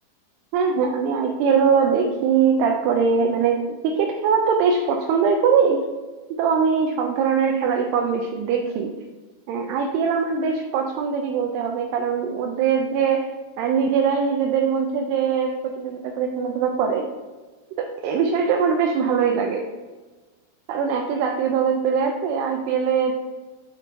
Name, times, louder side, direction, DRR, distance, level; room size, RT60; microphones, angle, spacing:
voice 1, 0.5-5.8 6.4-8.9 9.5-13.3 13.6-17.1 17.8-19.7 20.7-23.1, right 6 dB, 80° right, 2 dB, 2.4 m, -22 dB
6.6 x 6.5 x 2.5 m, 1.3 s
omnidirectional pair, 5.0 m